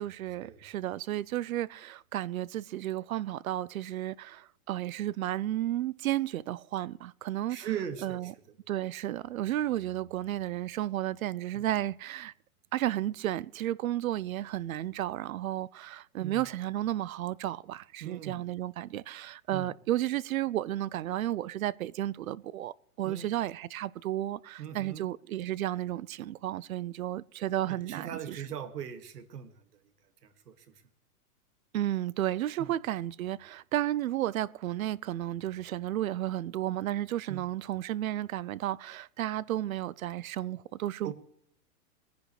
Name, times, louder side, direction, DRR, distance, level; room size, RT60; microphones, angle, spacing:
voice 1, 0.0-7.7 8.0-8.3 8.7-12.3 12.7-28.5 31.7-41.1, right 13 dB, 65° right, 0.6 m, -33 dB
voice 2, 7.5-8.3 11.5-11.7 16.2-16.5 18.0-18.4 19.5-19.7 23.0-23.3 24.6-25.1 27.7-29.5 30.2-30.5 32.6-32.7 37.3-37.4 41.0-41.1, right 9 dB, 85° right, 2.1 m, -39 dB
21.0 x 10.5 x 3.2 m
hypercardioid pair, 165°, 46 cm